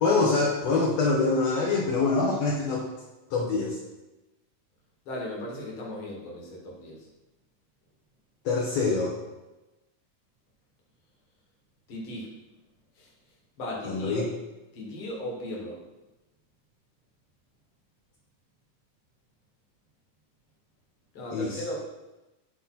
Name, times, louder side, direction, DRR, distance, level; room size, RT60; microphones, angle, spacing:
voice 1, 0.0-2.8 3.3-3.8 8.5-9.1 13.8-14.2 21.3-21.6, left 3 dB, 70° left, -4 dB, 1.9 m, -25 dB
voice 2, 5.1-7.0 11.9-12.3 13.0-13.1 13.6-14.2 14.8-15.8 21.1-21.9, left 1 dB, 50° left, -3 dB, 2.2 m, -36 dB
10.0 x 3.5 x 4.3 m, 1.1 s
omnidirectional pair, 3.5 m